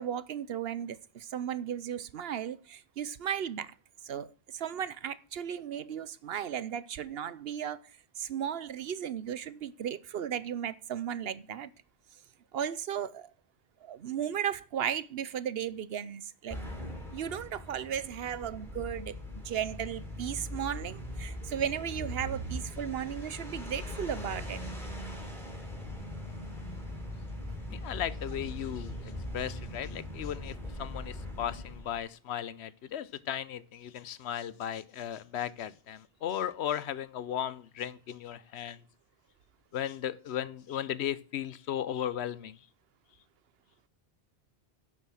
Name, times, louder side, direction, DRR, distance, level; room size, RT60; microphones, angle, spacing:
voice 1, 0.0-3.7 4.0-7.8 8.2-11.7 12.5-13.3 13.8-16.6 17.1-19.2 19.4-24.6, right 9 dB, 70° right, 0.9 m, -35 dB
sound 1, 16.5-32.0, left 1 dB, ahead, 3.9 m, -40 dB
voice 2, 27.7-38.8 39.7-42.6, left 10 dB, 85° left, 1.0 m, -36 dB
11.5 x 7.4 x 6.3 m
omnidirectional pair, 1.1 m